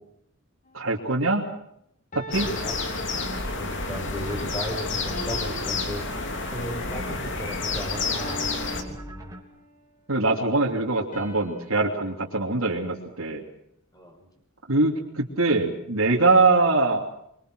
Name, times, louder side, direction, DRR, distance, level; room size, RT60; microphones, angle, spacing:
sound 1, 0.7-1.0 2.1-3.8 5.1-6.8 8.2-9.8 11.1-13.5, right 1 dB, 40° left, 3.5 m, -44 dB
voice 1, 0.7-1.4 2.1-2.5 10.1-13.4 14.7-17.0, right 3 dB, 80° right, -3 dB, 3.1 m, -23 dB
sound 2, 2.3-8.8, left 3 dB, 60° left, 3.2 m, -30 dB
voice 2, 2.4-2.8 3.6-6.0 6.5-8.5 8.9-9.0 13.9-14.3, left 1 dB, 20° left, 3 dB, 5.2 m, -35 dB
sound 3, 2.4-9.4, right 1 dB, 15° right, 3.3 m, -42 dB
25.0 x 24.0 x 6.3 m, 0.73 s
head